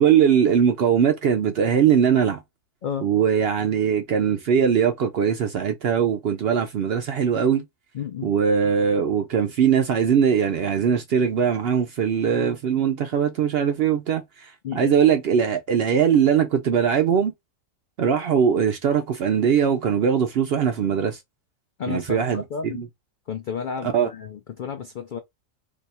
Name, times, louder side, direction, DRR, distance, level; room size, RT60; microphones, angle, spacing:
voice 1, 0.0-2.4 3.0-7.6 8.2-17.3 18.0-21.2 21.9-22.9 23.8-24.1, right 7 dB, 65° right, 0.6 m, -21 dB
voice 2, 7.9-8.3 14.6-15.0 21.8-22.8 23.3-25.2, left 7 dB, 70° left, 0.4 m, -32 dB
2.7 x 2.3 x 4.1 m
omnidirectional pair, 1.4 m